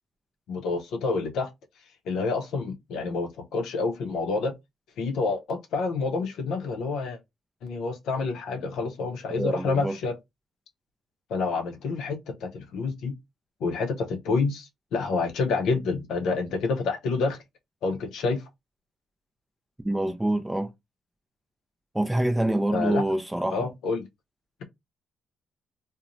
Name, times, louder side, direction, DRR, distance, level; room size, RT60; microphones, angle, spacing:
voice 1, 0.5-1.5 2.1-4.5 5.0-7.2 7.6-10.2 11.3-13.1 13.6-17.4 17.8-18.4 22.7-23.0 23.5-24.0, left 4 dB, 80° left, 0.6 m, -28 dB
voice 2, 9.4-10.0 19.8-20.7 21.9-23.7, right 1 dB, 10° right, 0.3 m, -26 dB
2.9 x 2.0 x 2.5 m
cardioid pair, 90°, 0 cm